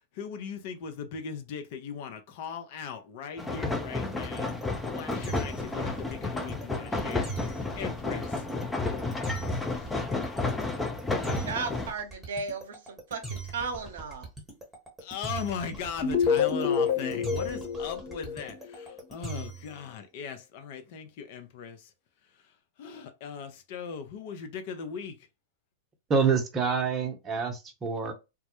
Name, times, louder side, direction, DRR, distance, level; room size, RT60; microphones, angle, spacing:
voice 1, 0.0-7.3 7.8-8.4 15.0-21.9 22.8-25.2, left 7 dB, 55° left, 0.6 m, -39 dB
sound 1, 3.4-11.9, left 3 dB, 10° left, 0.5 m, -31 dB
sound 2, 4.1-19.8, right 4 dB, 5° right, 0.9 m, -41 dB
voice 2, 11.4-14.3, right 4 dB, 70° right, 0.7 m, -35 dB
sound 3, 16.0-19.0, left 6 dB, 35° left, 1.1 m, -27 dB
voice 3, 26.1-28.1, right 5 dB, 25° right, 0.7 m, -27 dB
2.2 x 2.0 x 2.9 m
hypercardioid pair, 100°, 0 cm